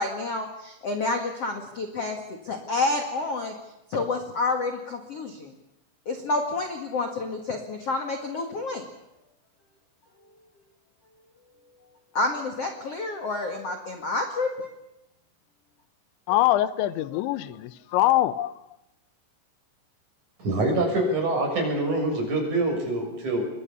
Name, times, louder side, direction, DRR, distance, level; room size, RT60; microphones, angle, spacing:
voice 1, 0.0-2.2 2.4-3.5 3.9-5.5 6.1-8.9 12.1-14.7, left 3 dB, 50° left, 4 dB, 1.9 m, -29 dB
voice 2, 16.3-18.6, left 14 dB, 75° left, 14 dB, 3.1 m, -23 dB
voice 3, 20.4-23.5, right 2 dB, 35° right, 2 dB, 8.0 m, -25 dB
27.0 x 22.0 x 7.1 m, 0.91 s
omnidirectional pair, 5.8 m